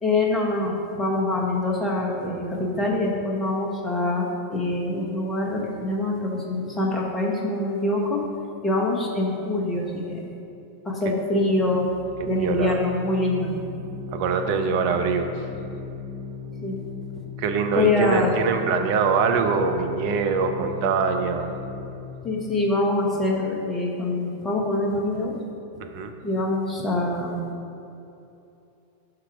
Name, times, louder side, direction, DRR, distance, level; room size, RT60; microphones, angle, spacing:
voice 1, 0.0-8.2 8.6-10.2 10.8-11.9 12.3-13.6 16.6-16.7 17.7-18.3 22.2-25.3 26.2-27.4, left 2 dB, 15° left, -1 dB, 1.1 m, -24 dB
Organ, 11.5-22.2, left 5 dB, 15° right, 1.0 m, -37 dB
voice 2, 12.2-12.8 14.1-15.3 17.4-21.5 25.8-26.1, right 5 dB, 45° right, 6 dB, 0.5 m, -24 dB
5.9 x 4.8 x 4.6 m, 2.8 s
figure-of-eight pair, 90°, 0 cm